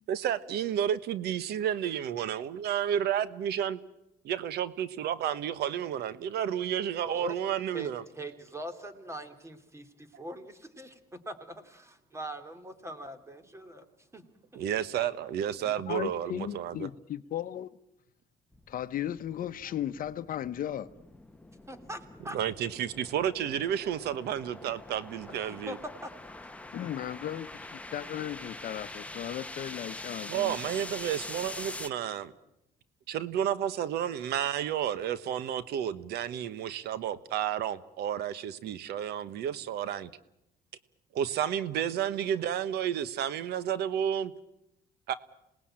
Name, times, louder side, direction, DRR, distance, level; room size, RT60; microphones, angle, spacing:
voice 1, 0.1-3.8 4.2-8.0 10.1-10.2 14.5-16.9 22.3-25.8 30.3-32.3 33.1-40.1 41.2-44.3 45.1-45.2, right 10 dB, 75° right, 16 dB, 1.2 m, -31 dB
voice 2, 7.0-7.4 7.7-14.2 14.5-14.7 21.7-22.4 25.4-25.8 26.0-26.6, right 1 dB, 15° right, 9 dB, 2.8 m, -43 dB
voice 3, 15.6-17.7 18.7-20.9 26.7-30.7, left 11 dB, 55° left, 12 dB, 1.0 m, -36 dB
sound 1, 18.5-31.9, left 2 dB, 10° left, 1.1 m, -44 dB
27.0 x 19.5 x 8.8 m, 0.87 s
cardioid pair, 110°, 17 cm